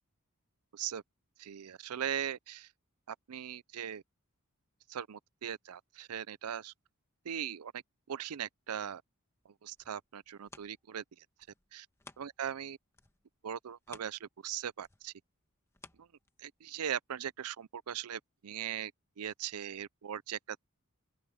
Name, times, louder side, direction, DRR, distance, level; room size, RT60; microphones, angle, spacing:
voice 1, 1.4-2.7 3.1-4.0 4.9-6.7 7.2-7.8 8.1-9.0 9.5-11.2 11.7-11.9 12.2-12.8 13.4-15.1 16.0-16.1 16.4-18.9 19.2-20.4, right 9 dB, 85° right, 0.5 m, -39 dB
sound 1, 9.6-12.6 12.9-16.7 17.2-17.3, left 2 dB, 10° left, 1.4 m, -58 dB
open air
head